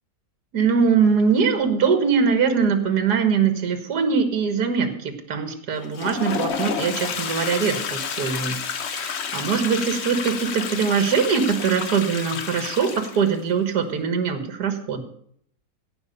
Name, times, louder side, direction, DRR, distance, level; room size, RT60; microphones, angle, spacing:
voice 1, 0.5-8.6 8.9-15.0, right 6 dB, 75° right, 8 dB, 2.0 m, -22 dB
Toilet flush, 5.8-13.4, left 6 dB, 50° left, 1.0 m, -30 dB
17.0 x 5.9 x 6.6 m, 0.64 s
omnidirectional pair, 1.7 m